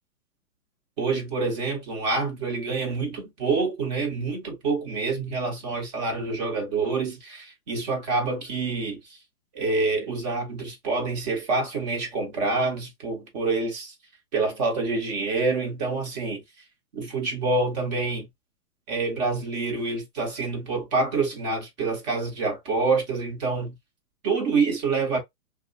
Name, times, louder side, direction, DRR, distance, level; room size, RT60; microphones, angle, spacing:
voice 1, 1.0-9.0 9.5-13.9 14.3-16.4 16.9-18.3 18.9-23.7 24.2-25.2, right 3 dB, 25° right, 1.2 m, -27 dB
3.1 x 2.4 x 2.6 m
hypercardioid pair, 150°, 47 cm